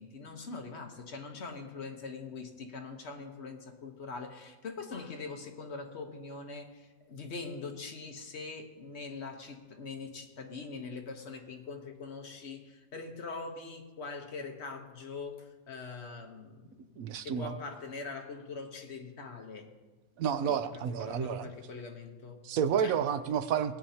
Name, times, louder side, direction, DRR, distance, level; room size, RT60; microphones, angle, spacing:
voice 1, 0.0-19.7 20.4-22.4 22.8-23.0, left 4 dB, 50° left, 4 dB, 1.3 m, -43 dB
voice 2, 17.0-17.6 20.2-21.5 22.4-23.8, right 8 dB, 75° right, 11 dB, 1.1 m, -30 dB
18.5 x 9.2 x 2.8 m, 1.2 s
omnidirectional pair, 1.5 m